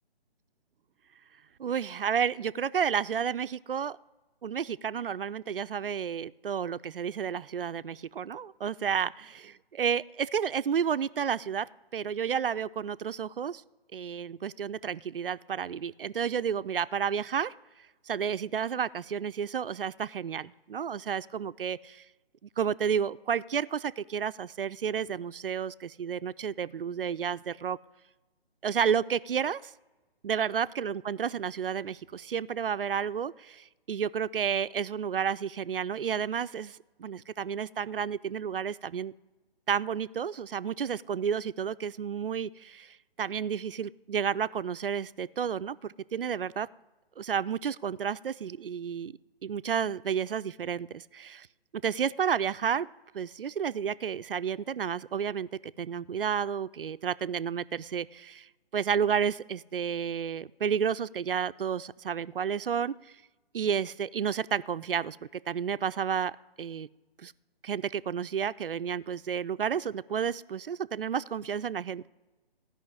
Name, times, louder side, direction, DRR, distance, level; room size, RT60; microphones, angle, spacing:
voice 1, 1.6-4.0 4.4-11.7 11.9-13.6 13.9-17.5 18.1-22.0 22.6-27.8 28.6-29.7 30.2-39.1 39.7-46.7 47.2-49.1 49.4-51.5 51.7-52.9 53.1-55.5 55.8-62.9 63.5-65.2 65.5-66.3 66.6-66.9 67.2-67.3 67.6-72.1, right 7 dB, 60° right, 14 dB, 0.5 m, -31 dB
15.5 x 5.6 x 9.5 m, 1.2 s
figure-of-eight pair, 140°, 31 cm